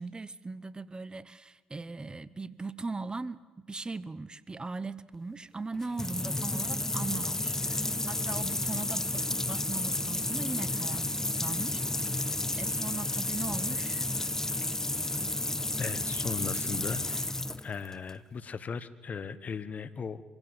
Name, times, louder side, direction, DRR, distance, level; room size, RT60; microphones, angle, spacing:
voice 1, 0.0-11.8 12.1-14.1, right 3 dB, 25° right, 18 dB, 0.8 m, -39 dB
sound 1, 5.7-18.1, left 2 dB, 15° left, 0.6 m, -31 dB
voice 2, 15.8-17.3 17.6-20.2, left 6 dB, 45° left, 15 dB, 1.1 m, -38 dB
25.0 x 16.0 x 8.0 m, 1.3 s
hypercardioid pair, 55°, 4 cm